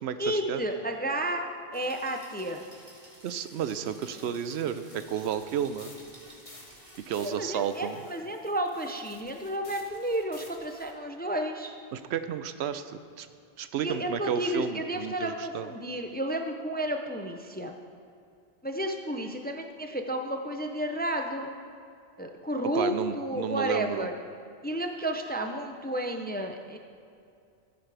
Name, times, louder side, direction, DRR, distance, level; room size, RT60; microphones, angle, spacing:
voice 1, 0.2-2.6 7.2-11.7 13.8-17.8 18.6-21.5 22.2-24.1 24.6-26.8, right 1 dB, 15° left, 4 dB, 0.4 m, -32 dB
sound 1, 1.7-7.2, right 1 dB, 45° right, 2.2 m, -53 dB
voice 2, 3.2-5.9 7.1-8.0 11.9-13.3 13.6-15.7 22.7-24.1, right 8 dB, 90° right, 11 dB, 0.9 m, -32 dB
sound 2, 4.0-10.9, left 2 dB, 35° left, 1.0 m, -53 dB
13.5 x 10.0 x 3.4 m, 2.5 s
omnidirectional pair, 1.1 m